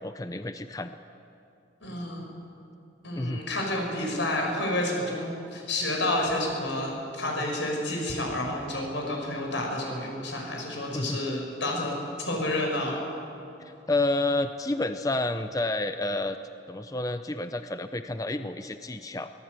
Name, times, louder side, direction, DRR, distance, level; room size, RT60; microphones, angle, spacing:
voice 1, 0.0-1.0 3.2-3.4 10.9-11.2 13.9-16.4 16.7-19.3, left 2 dB, 20° left, 9 dB, 0.6 m, -29 dB
voice 2, 1.8-2.3 3.0-12.0 12.2-13.0, left 1 dB, 90° left, 0 dB, 6.4 m, -30 dB
24.0 x 17.5 x 8.3 m, 2.7 s
head